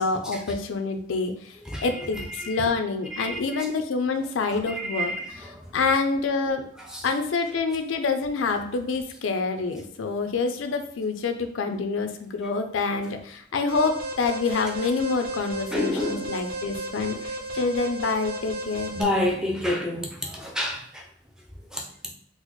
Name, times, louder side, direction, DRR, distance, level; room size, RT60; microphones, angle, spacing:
voice 1, 0.0-1.6 1.8-6.7 7.0-18.9, left 4 dB, 85° left, 0.4 m, -27 dB
voice 2, 3.1-3.7 4.7-5.6 6.9-7.0 15.7-16.3 17.1-17.2 18.9-21.0 21.7-21.8, left 1 dB, 5° right, 0.5 m, -29 dB
Alarm, 13.7-19.0, right 1 dB, 50° right, 0.7 m, -34 dB
3.9 x 2.0 x 3.0 m
head